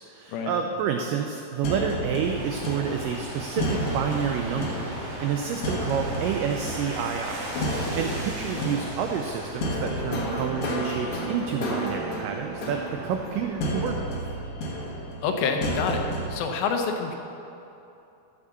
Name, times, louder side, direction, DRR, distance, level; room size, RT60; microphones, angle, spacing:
voice 1, 0.0-14.0, right 7 dB, 90° right, 4 dB, 1.9 m, -29 dB
sound 1, 1.6-16.4, equal, 65° left, 1.5 m, -31 dB
sound 2, 2.2-13.7, right 1 dB, 55° right, 3.4 m, -38 dB
voice 2, 15.2-16.0 16.3-17.2, left 5 dB, 80° left, 4 dB, 2.6 m, -27 dB
12.5 x 4.9 x 6.9 m, 2.8 s
omnidirectional pair, 4.4 m